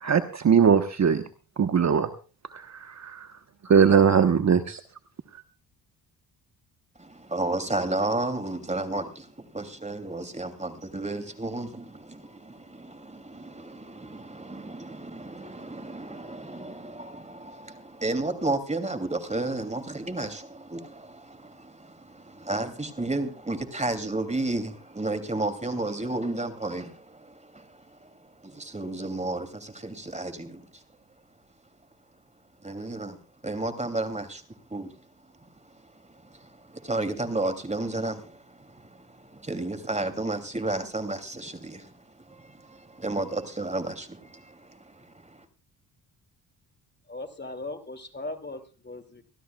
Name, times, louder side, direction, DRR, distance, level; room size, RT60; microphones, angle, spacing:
voice 1, 0.0-1.2 1.6-2.1 2.5-3.3 3.6-4.8, right 7 dB, 40° right, 8 dB, 1.2 m, -21 dB
voice 2, 7.0-30.8 32.6-35.1 35.4-45.4, right 2 dB, 15° right, 8 dB, 2.9 m, -33 dB
voice 3, 47.1-49.2, left 2 dB, 25° left, 8 dB, 2.6 m, -38 dB
25.0 x 13.5 x 2.4 m, 0.36 s
hypercardioid pair, 55°, 43 cm